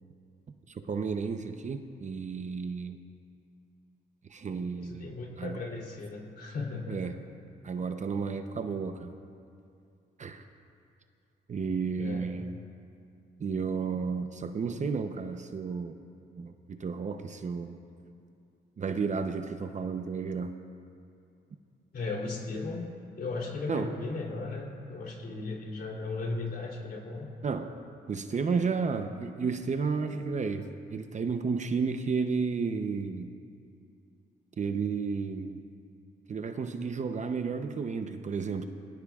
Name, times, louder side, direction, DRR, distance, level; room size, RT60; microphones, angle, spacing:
voice 1, 0.7-3.0 4.3-5.6 6.9-7.2 7.6-9.1 10.2-10.4 11.5-12.6 13.4-16.0 16.4-17.8 18.8-20.5 23.7-24.0 27.4-27.7 28.1-33.3 34.6-35.6 36.3-38.6, right 5 dB, 35° right, 7 dB, 0.7 m, -32 dB
voice 2, 4.8-7.1 12.0-12.4 21.9-22.9 23.2-27.3, left 3 dB, 50° left, -1 dB, 3.2 m, -36 dB
21.5 x 16.5 x 2.4 m, 2.5 s
cardioid pair, 90°, 20 cm